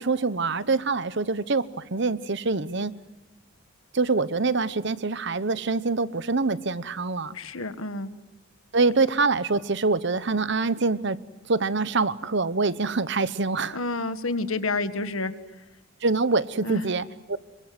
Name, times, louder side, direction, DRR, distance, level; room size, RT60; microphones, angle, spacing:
voice 1, 0.0-2.9 3.9-7.3 8.7-11.2 11.5-13.8 16.0-17.4, right 3 dB, 55° right, 15 dB, 1.0 m, -25 dB
voice 2, 7.3-8.1 13.7-15.3 16.6-16.9, left 2 dB, 80° left, 10 dB, 1.7 m, -29 dB
27.0 x 24.0 x 7.8 m, 1.0 s
head